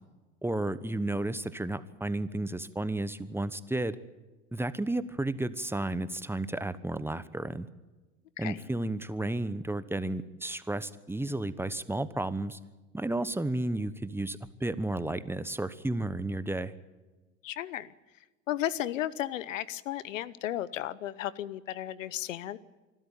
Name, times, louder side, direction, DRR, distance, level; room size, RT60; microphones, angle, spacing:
voice 1, 0.4-4.0 4.5-7.7 8.4-12.6 12.9-16.7, right 2 dB, 5° right, 14 dB, 1.1 m, -32 dB
voice 2, 17.4-17.9 18.5-22.6, left 13 dB, 90° left, 20 dB, 0.9 m, -34 dB
25.0 x 13.0 x 9.1 m, 1.2 s
hypercardioid pair, 85°, 37 cm